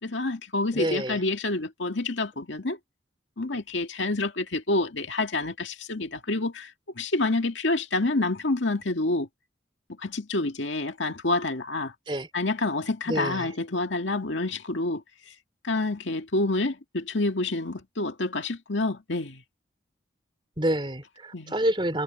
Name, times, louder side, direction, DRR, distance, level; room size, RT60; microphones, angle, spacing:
voice 1, 0.0-2.8 3.4-6.7 7.0-9.3 10.0-11.9 12.3-15.0 15.6-19.4 21.3-21.6, left 2 dB, 85° left, 2.0 m, -28 dB
voice 2, 0.7-1.2 12.1-12.3 13.1-13.5 20.6-22.0, right 1 dB, 25° right, 3.8 m, -28 dB
head